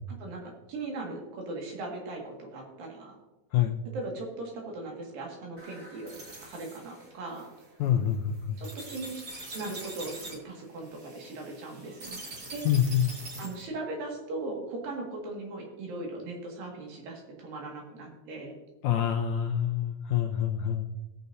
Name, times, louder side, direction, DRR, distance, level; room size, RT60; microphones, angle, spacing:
voice 1, 0.1-3.2 3.9-7.5 8.6-9.3 9.5-12.2 12.5-12.7 13.4-18.6, right 2 dB, 80° right, 0 dB, 3.8 m, -39 dB
sound 1, 5.6-13.7, right 2 dB, 40° right, 1.5 m, -44 dB
voice 2, 7.8-8.6 12.6-13.1 18.8-20.9, left 10 dB, 75° left, 4 dB, 1.8 m, -26 dB
18.5 x 7.0 x 2.7 m, 1.1 s
omnidirectional pair, 4.0 m